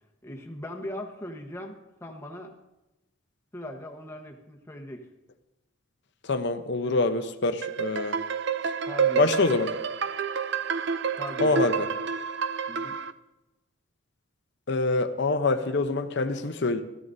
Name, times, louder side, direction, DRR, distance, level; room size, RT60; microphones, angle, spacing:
voice 1, 0.2-2.5 3.5-5.1 6.8-7.0 8.9-9.3 11.2-11.6 12.7-13.0, left 1 dB, 15° left, 2 dB, 1.1 m, -39 dB
voice 2, 6.2-8.2 9.2-9.7 11.4-11.9 14.7-16.8, left 3 dB, 60° left, 8 dB, 0.8 m, -25 dB
sound 1, 7.6-13.1, right 6 dB, 60° right, 0.5 m, -29 dB
17.0 x 13.5 x 2.7 m, 0.97 s
head